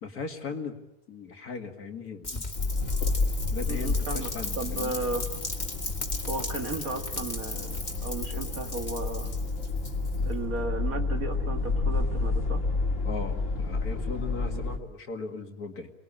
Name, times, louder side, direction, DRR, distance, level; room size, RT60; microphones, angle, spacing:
voice 1, 0.0-0.8 1.1-2.5 3.5-5.0 13.0-15.9, left 5 dB, 70° left, 5 dB, 2.5 m, -38 dB
Rain, 2.2-10.3, left 2 dB, 25° left, 2.6 m, -37 dB
sound 1, 2.5-14.8, left 3 dB, 55° left, 2.3 m, -30 dB
voice 2, 3.7-4.3 4.6-5.3 6.3-9.3 10.2-12.6 14.4-14.6, right 3 dB, 60° right, 5 dB, 2.6 m, -34 dB
28.0 x 20.5 x 8.8 m, 0.89 s
omnidirectional pair, 1.6 m